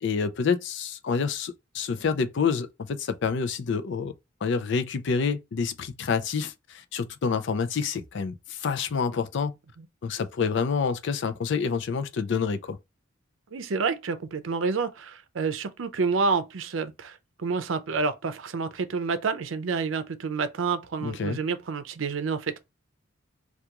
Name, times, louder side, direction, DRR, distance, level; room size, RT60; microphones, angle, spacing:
voice 1, 0.0-4.1 4.4-9.5 10.0-12.8 21.0-21.4, left 5 dB, 65° left, 0.4 m, -28 dB
voice 2, 13.5-22.6, right 4 dB, 80° right, 0.5 m, -29 dB
2.9 x 2.4 x 3.5 m
head